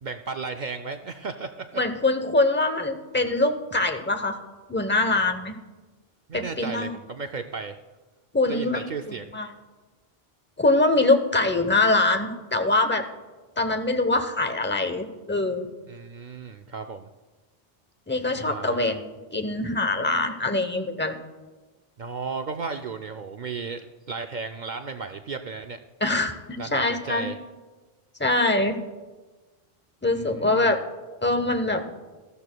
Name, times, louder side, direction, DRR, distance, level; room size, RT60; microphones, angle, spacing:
voice 1, 0.0-1.7 6.3-7.8 8.5-9.2 15.9-17.1 18.4-19.0 22.0-25.8 26.6-27.4 30.1-30.7, right 4 dB, 55° right, 6 dB, 0.6 m, -34 dB
voice 2, 1.8-4.4 4.7-5.5 6.3-6.9 8.3-8.8 9.3-9.5 10.6-13.0 13.6-15.7 18.1-21.2 26.0-27.3 28.2-28.8 30.0-30.8 31.2-31.8, left 2 dB, 10° left, 6 dB, 0.7 m, -23 dB
19.0 x 13.5 x 2.2 m, 1.3 s
omnidirectional pair, 1.0 m